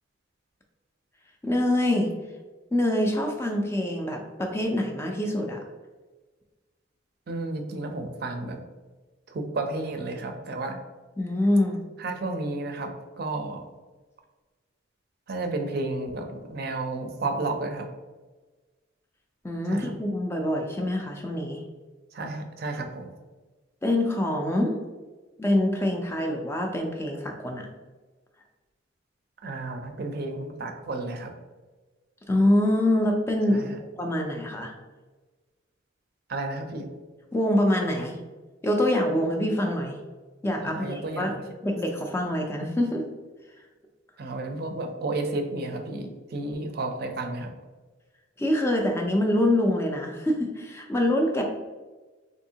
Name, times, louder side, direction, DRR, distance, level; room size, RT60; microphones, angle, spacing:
voice 1, 1.4-2.1 2.7-5.6 11.2-11.8 19.4-21.6 23.8-24.8 25.4-27.7 32.3-33.7 34.0-34.7 37.3-38.2 38.6-40.0 40.4-41.4 41.6-43.0 48.4-51.4, left 1 dB, 15° left, 2 dB, 0.3 m, -25 dB
voice 2, 7.3-8.6 9.3-10.8 12.0-12.9 13.2-13.6 15.3-17.9 19.7-19.9 22.1-23.1 29.4-31.3 33.5-33.8 36.3-36.9 40.6-41.4 44.2-47.5, right 2 dB, 50° right, 4 dB, 0.4 m, -32 dB
3.4 x 2.7 x 2.7 m, 1.3 s
head